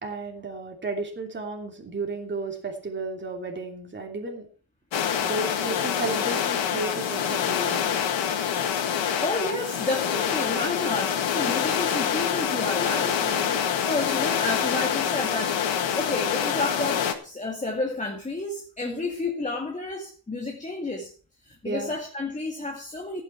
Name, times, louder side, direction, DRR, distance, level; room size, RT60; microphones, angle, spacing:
voice 1, 0.0-4.5 5.2-8.1 13.2-13.6 18.8-19.1 21.6-22.0, right 3 dB, 25° right, 2 dB, 2.9 m, -33 dB
sound 1, 4.9-17.1, left 8 dB, 75° left, 1.9 m, -26 dB
voice 2, 9.2-13.2 13.7-21.1 21.4-23.2, left 2 dB, 15° left, 2 dB, 2.2 m, -31 dB
15.5 x 9.3 x 4.6 m, 0.39 s
wide cardioid pair, 150°, 46 cm